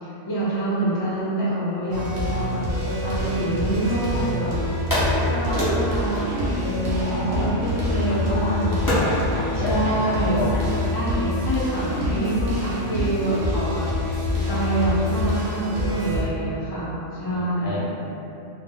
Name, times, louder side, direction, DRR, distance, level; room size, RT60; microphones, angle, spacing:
voice 1, 0.0-4.6 5.2-9.1 9.6-10.4 10.9-13.9 14.5-17.8, right 1 dB, 35° left, -9 dB, 0.3 m, -26 dB
sound 1, 1.9-16.2, left 1 dB, 55° right, 0.5 m, -26 dB
sound 2, 3.2-4.3 4.9-7.4 8.9-9.3, equal, 20° left, 0.8 m, -26 dB
voice 2, 6.8-7.5 8.1-10.7 12.0-12.7 17.1-17.8, left 1 dB, 65° left, -7 dB, 0.7 m, -30 dB
2.0 x 2.0 x 3.6 m, 2.9 s
omnidirectional pair, 1.3 m